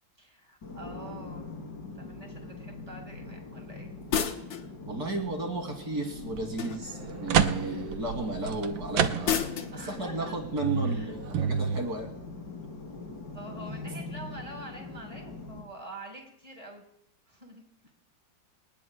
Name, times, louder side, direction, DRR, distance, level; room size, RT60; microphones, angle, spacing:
voice 1, 0.2-1.4 1.9-3.9 9.7-10.4 10.8-11.1 13.3-16.8 17.3-17.9, right 1 dB, 20° right, 1 dB, 4.4 m, -46 dB
sound 1, 0.6-15.6, left 3 dB, 65° left, 3.3 m, -42 dB
sound 2, 4.1-4.7 6.6-7.0 9.2-9.8, left 8 dB, 85° left, 1.9 m, -30 dB
voice 2, 4.8-9.5 9.9-12.1, right 2 dB, 55° right, 2 dB, 3.1 m, -33 dB
sound 3, 6.2-6.4 6.9-9.7 10.1-10.2 10.6-11.8, right 7 dB, 85° right, 1.6 m, -29 dB
27.5 x 19.5 x 2.2 m, 0.81 s
omnidirectional pair, 2.0 m